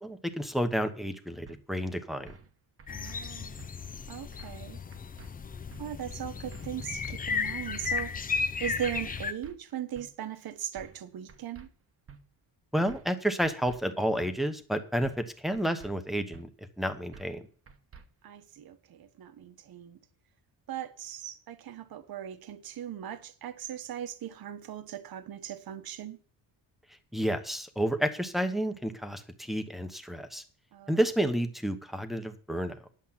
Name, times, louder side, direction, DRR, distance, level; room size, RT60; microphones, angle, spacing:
voice 1, 0.0-2.4 12.7-16.5 16.8-17.4 27.1-30.4 30.9-32.8, equal, ahead, 1.0 m, -30 dB
sound 1, 1.5-1.6 2.3-2.5 2.8-3.2 3.6-3.7 4.4-4.7 4.9-5.3 5.7-5.8 6.5-6.8 7.0-7.4 7.8-8.0 8.6-8.9 9.2-9.5 9.9-10.1 10.8-11.0 11.3-11.7 12.1-12.2 12.9-13.2 13.4-13.8 14.2-14.3 15.0-15.3 15.5-15.9 16.3-16.4 17.1-17.4 17.7-18.0, right 5 dB, 30° right, 1.0 m, -50 dB
sound 2, 2.9-9.3, left 5 dB, 20° left, 0.5 m, -34 dB
voice 2, 2.9-3.6 4.1-4.8 5.8-11.7 18.2-20.0 20.7-26.2 30.7-31.0, right 10 dB, 55° right, 1.2 m, -39 dB
11.0 x 7.4 x 5.7 m
cardioid pair, 170°, 44 cm